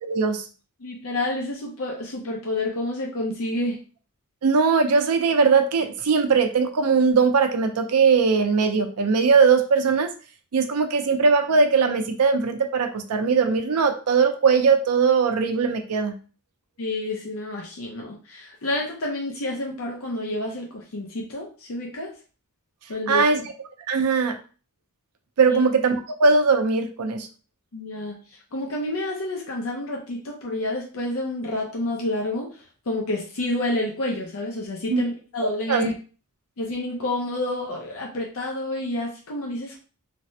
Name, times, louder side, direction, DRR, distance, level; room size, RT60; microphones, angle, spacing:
voice 1, 0.0-0.5 4.4-10.1 10.5-16.1 23.1-23.4 23.9-24.4 25.4-27.3 34.9-35.0 35.4-35.9, right 5 dB, 75° right, 6 dB, 0.5 m, -20 dB
voice 2, 0.8-3.8 16.8-22.1 22.9-23.5 25.5-25.6 27.7-28.2 28.5-32.5 32.9-35.9 36.6-39.8, left 1 dB, 65° left, -1 dB, 0.6 m, -29 dB
3.2 x 2.1 x 2.6 m, 0.37 s
head